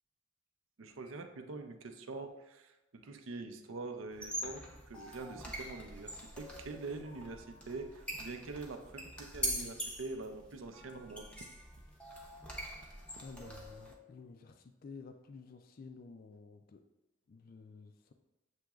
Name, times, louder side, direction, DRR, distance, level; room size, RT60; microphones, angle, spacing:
voice 1, 0.8-11.3, right 3 dB, 80° right, 6 dB, 0.5 m, -45 dB
sound 1, 4.1-13.9, equal, 5° left, 0.6 m, -43 dB
voice 2, 13.2-16.8 17.3-18.1, left 4 dB, 45° left, 6 dB, 0.3 m, -52 dB
7.4 x 2.9 x 2.3 m, 1.0 s
head